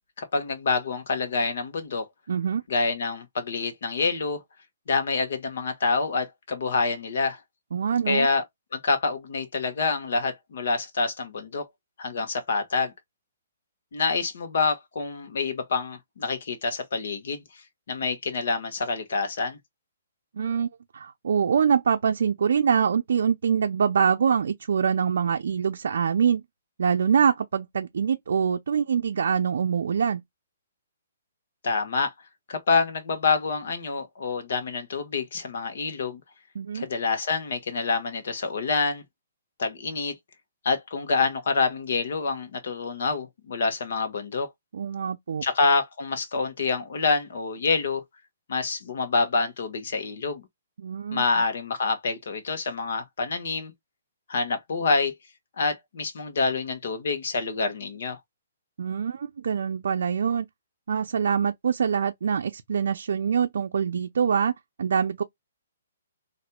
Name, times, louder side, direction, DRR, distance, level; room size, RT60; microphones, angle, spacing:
voice 1, 0.2-2.1 2.7-4.4 4.9-7.4 8.1-8.4 8.7-11.6 12.0-12.9 13.9-17.4 17.9-19.6 31.6-32.1 32.5-36.2 36.7-39.0 39.6-40.1 40.6-44.5 45.4-48.0 48.5-50.4 51.1-53.7 54.3-55.1 55.6-58.2, left 4 dB, 65° left, 1.2 m, -27 dB
voice 2, 2.3-2.6 7.7-8.3 20.4-20.7 20.9-26.4 26.8-30.2 36.6-36.9 44.7-45.4 50.8-51.2 58.8-60.5 60.9-64.5 64.8-65.2, right 7 dB, 70° right, 0.4 m, -24 dB
4.2 x 2.7 x 2.2 m
hypercardioid pair, 160°, 0 cm